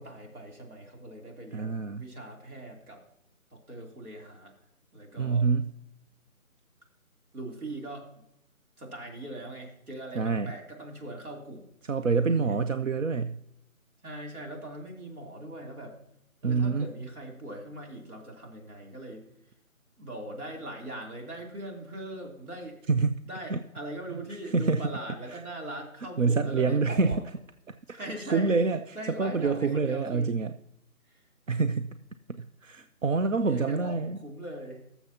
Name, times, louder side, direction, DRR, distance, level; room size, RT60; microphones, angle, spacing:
voice 1, 0.0-3.0 3.5-4.5 4.9-5.5 7.3-8.1 8.8-11.6 12.5-12.6 14.0-16.0 16.4-19.2 20.0-22.8 23.2-27.2 27.9-28.5 28.9-30.3 31.1-31.2 33.4-34.8, right 1 dB, 85° right, 0 dB, 3.2 m, -41 dB
voice 2, 1.5-2.1 5.2-5.7 10.2-10.5 11.8-13.4 16.4-16.9 22.9-23.1 23.5-23.6 24.5-24.8 25.3-25.4 26.2-27.1 27.9-28.8 29.2-30.5 31.5-31.9 32.4-34.2, right 4 dB, 65° right, 10 dB, 0.6 m, -26 dB
19.5 x 7.0 x 2.8 m, 0.77 s
figure-of-eight pair, 175°, 43 cm